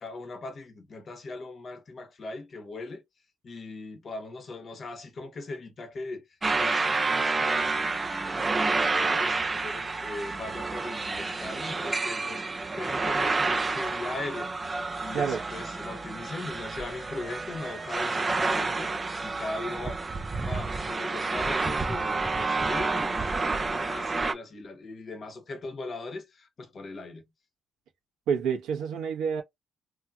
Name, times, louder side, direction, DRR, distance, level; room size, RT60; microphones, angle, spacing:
voice 1, 0.0-3.0 3.4-6.2 6.5-12.5 12.8-14.5 15.0-18.9 19.2-20.0 20.5-27.2, left 2 dB, 45° left, 1.0 m, -39 dB
sound 1, 6.4-24.3, right 3 dB, 25° right, 0.5 m, -29 dB
voice 2, 28.3-29.4, right 7 dB, 85° right, 1.2 m, -28 dB
3.1 x 2.7 x 2.3 m
cardioid pair, 90°, 0 cm